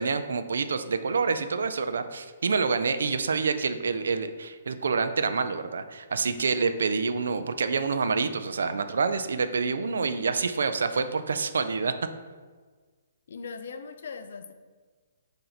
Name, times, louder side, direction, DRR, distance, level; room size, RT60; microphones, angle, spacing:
voice 1, 0.0-11.9, right 4 dB, 85° right, 10 dB, 0.3 m, -27 dB
voice 2, 13.3-14.5, left 5 dB, 55° left, 9 dB, 0.3 m, -39 dB
3.9 x 2.6 x 4.3 m, 1.4 s
hypercardioid pair, 180°, 0 cm